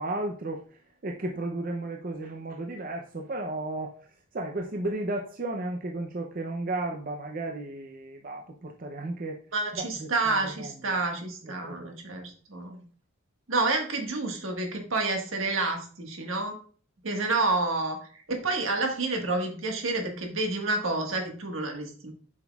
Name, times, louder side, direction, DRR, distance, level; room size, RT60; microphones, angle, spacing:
voice 1, 0.0-4.0 4.3-9.4 9.7-11.0 11.4-12.0, right 2 dB, 40° right, 2 dB, 0.6 m, -34 dB
voice 2, 9.5-12.8 13.5-16.6 17.0-18.0 18.3-22.1, right 3 dB, 70° right, 2 dB, 1.6 m, -29 dB
7.3 x 6.1 x 2.4 m, 0.43 s
head